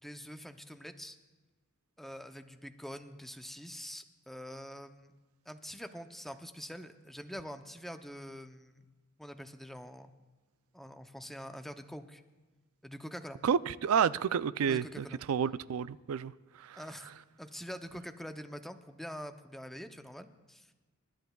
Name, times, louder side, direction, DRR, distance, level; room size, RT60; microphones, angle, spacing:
voice 1, 0.0-1.2 2.0-5.1 5.5-8.9 9.2-10.1 10.7-12.2 12.8-13.4 14.7-15.2 16.8-17.1 17.4-20.7, equal, ahead, 0.6 m, -45 dB
voice 2, 13.4-16.3 16.6-16.8, right 7 dB, 80° right, 0.4 m, -30 dB
28.0 x 12.0 x 2.3 m
head